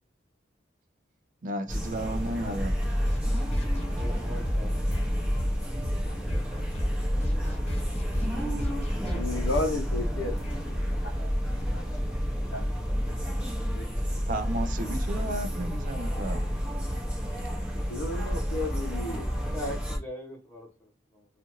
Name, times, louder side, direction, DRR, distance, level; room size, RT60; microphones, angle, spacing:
voice 1, 1.4-2.7 14.3-16.4, right 1 dB, 40° right, 0.4 m, -33 dB
sound 1, 1.7-20.0, equal, 5° right, 0.7 m, -30 dB
sound 2, 2.6-11.0, equal, 35° left, 0.9 m, -35 dB
voice 2, 4.0-4.9 19.5-21.3, equal, 10° left, 1.0 m, -40 dB
voice 3, 9.1-10.3 11.7-11.8 12.5-12.7 13.0-13.1 13.8-13.9 17.9-19.3, left 2 dB, 65° left, 0.7 m, -32 dB
2.4 x 2.4 x 2.9 m
head